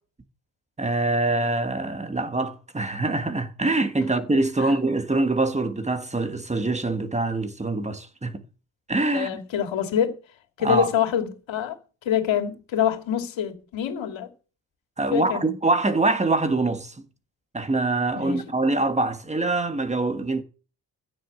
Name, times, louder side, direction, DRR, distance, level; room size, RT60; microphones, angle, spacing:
voice 1, 0.8-8.4 8.9-9.3 10.6-10.9 15.0-17.0 17.5-20.4, right 2 dB, 15° right, 1.5 m, -24 dB
voice 2, 9.1-10.2 10.6-11.8 12.0-14.3 15.1-15.5 18.2-18.4, left 9 dB, 90° left, 2.7 m, -25 dB
15.5 x 6.6 x 8.1 m
wide cardioid pair, 140°, 44 cm